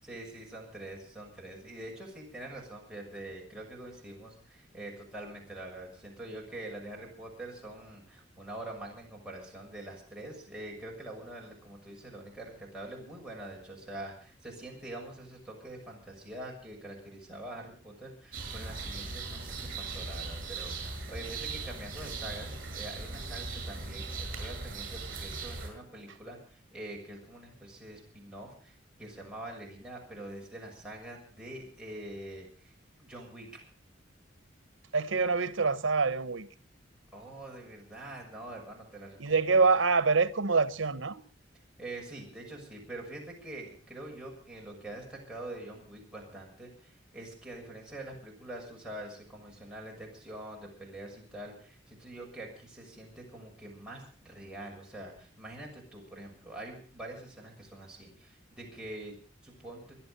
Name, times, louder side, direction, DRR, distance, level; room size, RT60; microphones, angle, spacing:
voice 1, 0.0-32.7 33.0-33.6 37.1-39.7 41.8-60.0, right 1 dB, 5° right, 6.5 m, -45 dB
sound 1, 18.3-25.7, right 3 dB, 50° right, 7.8 m, -39 dB
voice 2, 34.9-36.5 39.2-41.2, right 4 dB, 85° right, 1.0 m, -26 dB
24.5 x 10.5 x 5.5 m
head